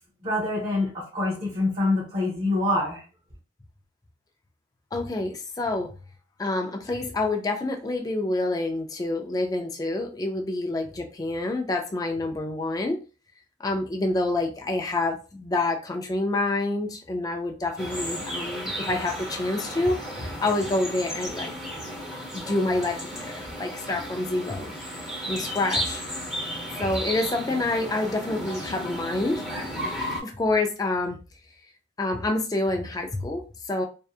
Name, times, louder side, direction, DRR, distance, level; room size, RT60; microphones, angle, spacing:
voice 1, 0.2-3.0, left 2 dB, 40° right, -7 dB, 0.9 m, -25 dB
voice 2, 4.9-5.9 6.4-13.0 13.6-21.5 22.3-24.7 25.3-26.0 26.8-29.4 30.2-31.2 32.0-33.9, left 2 dB, 20° left, 3 dB, 0.3 m, -27 dB
sound 1, 17.8-30.2, equal, 5° right, 0.8 m, -34 dB
2.7 x 2.3 x 2.4 m, 0.34 s
head